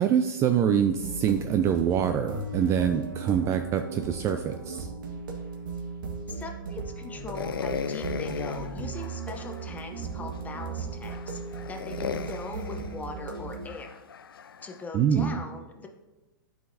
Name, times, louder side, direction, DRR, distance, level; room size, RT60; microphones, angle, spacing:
voice 1, 0.0-4.9 14.9-15.4, right 8 dB, 25° right, 7 dB, 0.3 m, -25 dB
sound 1, 1.0-13.7, right 4 dB, 70° right, 1.4 m, -37 dB
voice 2, 6.3-11.4 11.7-14.0 14.6-15.9, left 3 dB, 15° left, 4 dB, 0.8 m, -40 dB
sound 2, 7.3-9.7 10.3-10.4 11.0-14.8, left 7 dB, 90° left, 0.4 m, -37 dB
11.0 x 4.7 x 2.7 m, 1.1 s
hypercardioid pair, 125°, 12 cm